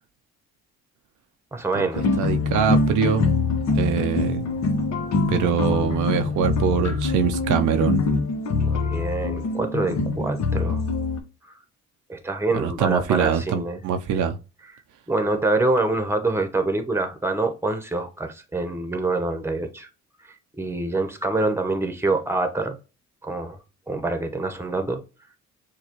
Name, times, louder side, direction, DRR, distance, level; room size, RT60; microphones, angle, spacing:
voice 1, 1.5-2.0 8.7-10.8 12.1-13.8 14.1-14.2 15.1-19.9 20.5-22.8 23.2-23.6 23.9-25.0, right 2 dB, 10° right, 0.9 m, -25 dB
sound 1, 1.9-11.2, left 3 dB, 65° left, 1.0 m, -24 dB
voice 2, 2.2-3.3 3.8-4.4 5.3-8.0 12.5-14.4, right 7 dB, 80° right, 0.6 m, -23 dB
6.5 x 2.3 x 2.9 m
cardioid pair, 90°, 30 cm